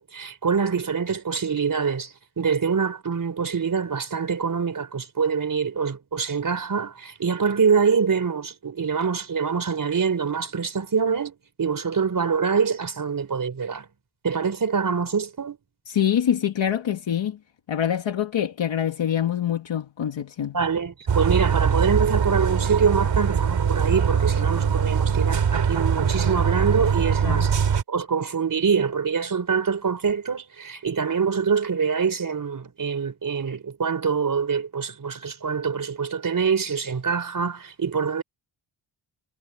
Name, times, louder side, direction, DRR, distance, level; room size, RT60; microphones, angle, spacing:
voice 1, 0.0-13.9 14.2-15.6 20.5-27.5 27.9-38.2, right 6 dB, 40° right, 4.1 m, -25 dB
voice 2, 15.9-17.4 17.7-20.6 27.2-27.5, left 9 dB, 65° left, 1.6 m, -25 dB
sound 1, 21.1-27.8, right 7 dB, 65° right, 4.2 m, -22 dB
wide cardioid pair, 165°, 48 cm